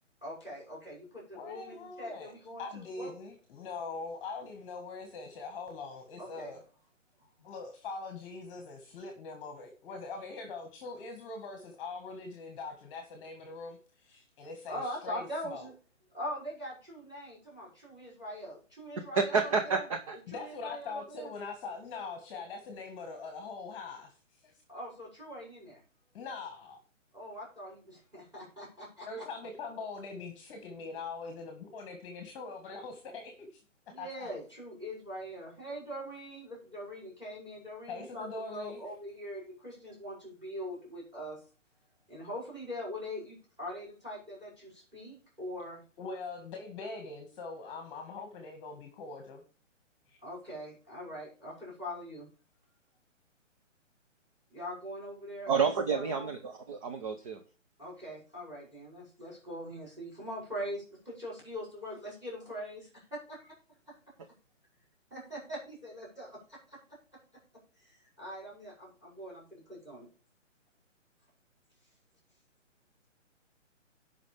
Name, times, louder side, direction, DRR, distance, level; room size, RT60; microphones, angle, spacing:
voice 1, 0.2-3.1 6.2-6.5 14.7-15.7 16.1-19.8 20.3-21.3 24.7-25.8 27.1-29.2 33.9-41.4 42.1-45.8 50.2-52.3 54.5-55.5 55.9-56.3 57.8-63.5 63.9-64.0 65.1-66.8 67.8-70.1, equal, 10° right, -4 dB, 5.8 m, -42 dB
voice 2, 1.3-2.3 2.6-6.6 7.4-15.7 20.3-24.1 24.4-24.5 26.1-26.8 29.1-33.6 34.0-34.3 37.9-38.8 46.0-49.4 50.1-50.2, left 4 dB, 25° left, 4 dB, 1.7 m, -42 dB
voice 3, 19.3-20.2 55.5-57.4, right 5 dB, 25° right, 6 dB, 0.7 m, -30 dB
16.5 x 5.6 x 3.4 m, 0.38 s
hypercardioid pair, 150°, 38 cm